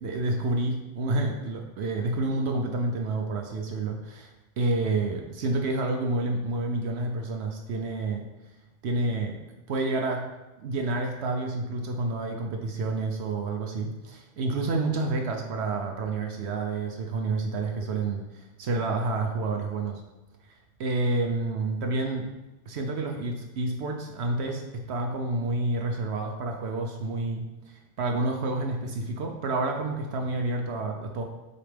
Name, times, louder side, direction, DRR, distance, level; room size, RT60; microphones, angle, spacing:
voice 1, 0.0-8.2 8.8-9.4 9.7-10.3 10.6-20.0 20.5-22.3 22.7-31.2, right 2 dB, 70° right, 2 dB, 0.9 m, -29 dB
6.8 x 4.2 x 3.4 m, 1.0 s
omnidirectional pair, 1.2 m